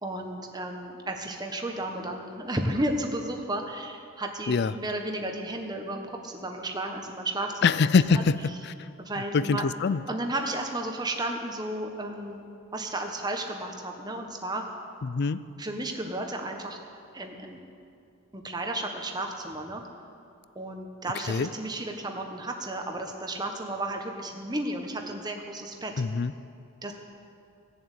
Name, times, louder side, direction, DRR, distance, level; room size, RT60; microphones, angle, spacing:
voice 1, 0.0-7.5 8.1-8.2 9.0-9.6 10.1-12.4 12.7-14.6 15.6-16.8 17.1-17.6 18.3-19.8 20.5-25.9 26.8-26.9, right 1 dB, 20° right, 3 dB, 1.3 m, -33 dB
voice 2, 7.6-8.5 9.3-10.0 15.0-15.4 21.3-21.5 26.0-26.3, left 5 dB, 50° left, 16 dB, 0.4 m, -23 dB
17.5 x 7.4 x 8.3 m, 2.5 s
head